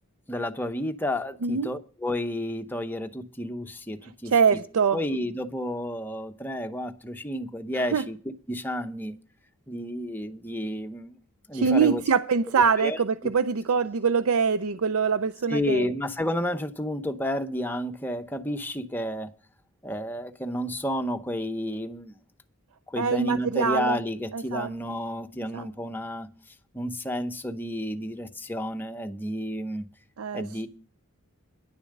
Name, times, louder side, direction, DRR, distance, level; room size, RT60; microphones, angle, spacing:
voice 1, 0.3-4.3 4.9-9.2 9.7-11.2 11.5-12.0 12.8-13.0 15.5-19.3 19.8-22.1 22.9-26.3 26.7-29.9 30.3-30.7, left 1 dB, 10° left, 0.7 m, -31 dB
voice 2, 4.3-5.0 7.8-8.0 11.5-15.9 23.0-24.0 24.3-24.7 25.5-25.7 30.2-30.7, right 6 dB, 75° right, 0.5 m, -24 dB
10.5 x 7.0 x 6.5 m
head